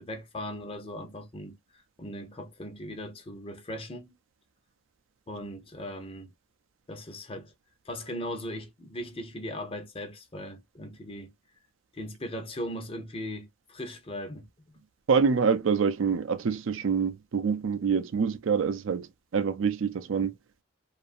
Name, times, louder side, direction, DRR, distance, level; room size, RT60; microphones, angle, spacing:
voice 1, 0.0-1.6 2.0-4.2 5.3-6.3 6.9-7.5 7.9-11.3 11.9-14.8 20.2-20.3, left 1 dB, 30° left, 0.7 m, -38 dB
voice 2, 15.1-19.1 19.3-20.3, right 6 dB, 70° right, 0.4 m, -26 dB
2.6 x 2.4 x 2.5 m
head